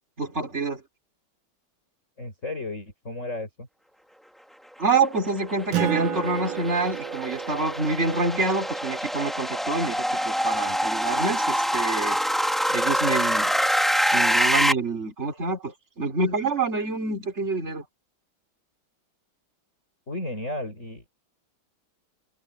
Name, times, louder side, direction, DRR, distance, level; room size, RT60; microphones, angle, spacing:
voice 1, 0.2-0.8 4.8-12.2 12.7-13.5 14.1-17.8, right 3 dB, 30° right, 4.4 m, -27 dB
voice 2, 2.2-3.7 20.1-21.1, left 2 dB, 35° left, 7.0 m, -33 dB
sound 1, 5.2-14.7, equal, ahead, 1.9 m, -25 dB
Acoustic guitar, 5.7-10.7, right 10 dB, 75° right, 2.0 m, -33 dB
omnidirectional pair, 2.3 m